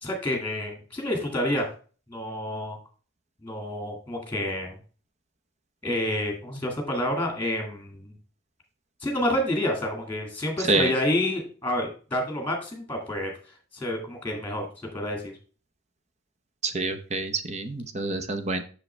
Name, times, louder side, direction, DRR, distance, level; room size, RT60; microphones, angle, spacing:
voice 1, 0.0-1.7 2.1-2.8 3.4-4.8 5.8-8.1 9.0-13.3 13.7-14.6 14.9-15.3, left 1 dB, 10° left, 1 dB, 2.0 m, -28 dB
voice 2, 10.6-10.9 16.6-18.6, right 3 dB, 35° right, 8 dB, 0.8 m, -27 dB
7.6 x 6.5 x 3.3 m, 0.38 s
head